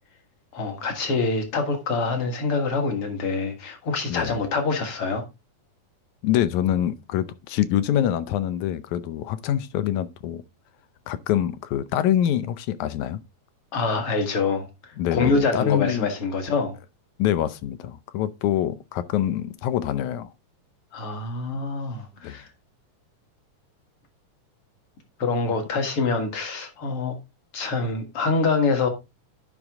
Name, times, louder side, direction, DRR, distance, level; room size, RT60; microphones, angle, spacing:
voice 1, 0.5-5.2 13.7-16.8 20.9-22.5 25.2-27.2 27.5-28.9, left 4 dB, 50° left, 2.3 m, -25 dB
voice 2, 4.1-4.5 6.2-10.4 11.1-13.2 15.0-16.1 17.2-20.3 22.2-22.4, left 11 dB, 75° left, 2.0 m, -25 dB
11.0 x 5.3 x 3.5 m
omnidirectional pair, 3.5 m